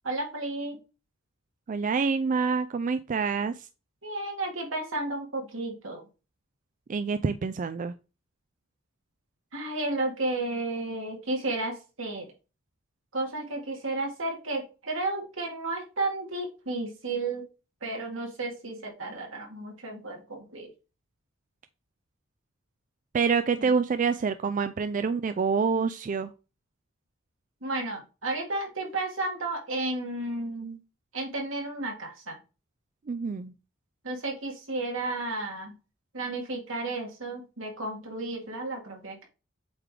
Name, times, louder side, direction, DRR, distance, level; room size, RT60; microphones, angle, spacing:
voice 1, 0.0-0.8 4.0-6.0 9.5-12.3 13.1-17.5 17.8-20.7 23.6-23.7 27.6-30.8 31.1-32.4 34.0-35.7 36.1-39.2, right 2 dB, 80° right, 1 dB, 2.2 m, -32 dB
voice 2, 1.7-3.7 6.9-7.9 23.1-26.3 33.1-33.5, right 5 dB, 40° right, 11 dB, 0.4 m, -27 dB
7.9 x 3.3 x 3.7 m, 0.31 s
head